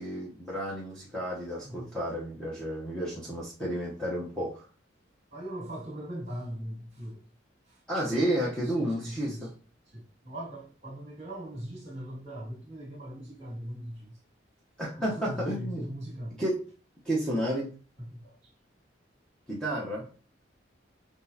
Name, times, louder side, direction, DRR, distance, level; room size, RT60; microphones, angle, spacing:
voice 1, 0.0-4.6 7.9-9.5 14.8-15.9 16.4-16.7 17.0-17.7 19.5-20.1, right 1 dB, 5° left, 1.0 m, -31 dB
voice 2, 5.3-7.2 7.7-7.8 8.7-9.5 9.9-14.2 15.0-16.4 18.1-18.4, right 1 dB, 35° right, 2.2 m, -40 dB
6.2 x 3.1 x 2.8 m
head